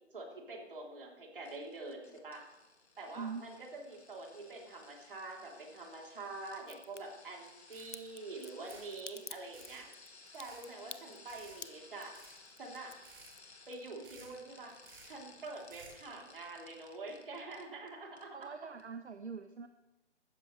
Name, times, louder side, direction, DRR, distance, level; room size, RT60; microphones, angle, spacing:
voice 1, 0.1-2.5 3.0-10.0 10.3-12.1 12.6-12.9 13.7-14.7 15.0-18.5, right 3 dB, 50° right, 0 dB, 3.7 m, -46 dB
sound 1, 1.4-17.9 18.2-18.5 18.8-18.9, left 3 dB, 65° left, 2.2 m, -59 dB
Crack, 6.7-7.0 7.9-14.2 14.5-15.2 15.4-15.5, left 4 dB, 85° left, 1.0 m, -50 dB
sound 2, 7.5-7.6 7.7-8.1 8.6-8.9 9.3-9.8 10.2-10.7 11.3-11.6 12.0-12.5 12.9-13.3 13.8-14.3 14.7-15.1 15.5-16.0, right 5 dB, 20° right, 2.4 m, -56 dB
voice 2, 18.3-19.7, right 5 dB, 70° right, 8 dB, 1.0 m, -43 dB
16.5 x 13.5 x 3.4 m, 1.0 s
figure-of-eight pair, 150°, 35 cm